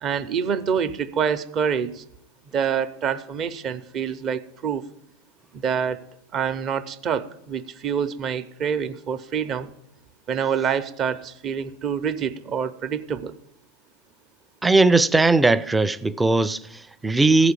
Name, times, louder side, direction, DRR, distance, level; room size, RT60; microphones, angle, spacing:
voice 1, 0.0-2.0 2.5-4.8 5.6-6.0 6.3-9.7 10.3-13.3, right 7 dB, 35° right, 0.7 m, -26 dB
voice 2, 14.6-17.5, right 3 dB, 10° right, 0.4 m, -19 dB
14.0 x 5.0 x 8.2 m
supercardioid pair, 125°, 0 cm